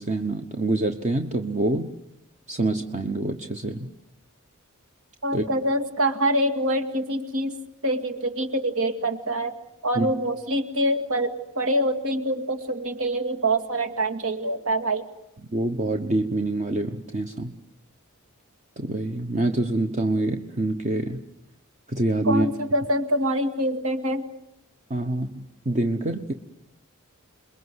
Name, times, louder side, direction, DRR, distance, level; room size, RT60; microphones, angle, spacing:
voice 1, 0.0-1.9 2.5-3.9 5.3-5.5 10.0-10.1 15.5-17.5 18.8-21.2 21.9-22.5 24.9-26.3, right 2 dB, 35° right, 6 dB, 1.0 m, -26 dB
voice 2, 5.2-7.6 7.8-9.5 9.8-15.1 22.2-24.2, right 1 dB, 70° right, 7 dB, 2.3 m, -25 dB
28.0 x 22.0 x 8.0 m, 0.82 s
head